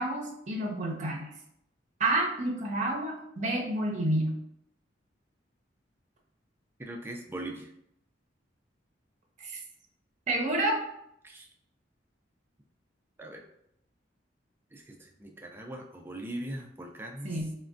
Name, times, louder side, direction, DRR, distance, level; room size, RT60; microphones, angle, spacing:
voice 1, 0.0-1.3 2.0-4.4 9.4-9.6 10.3-10.8 17.2-17.6, right 1 dB, 40° right, -1 dB, 0.7 m, -29 dB
voice 2, 6.8-7.7 11.2-11.5 13.2-13.4 14.7-17.4, right 1 dB, 10° right, 1 dB, 0.3 m, -40 dB
3.4 x 2.1 x 2.5 m, 0.76 s
head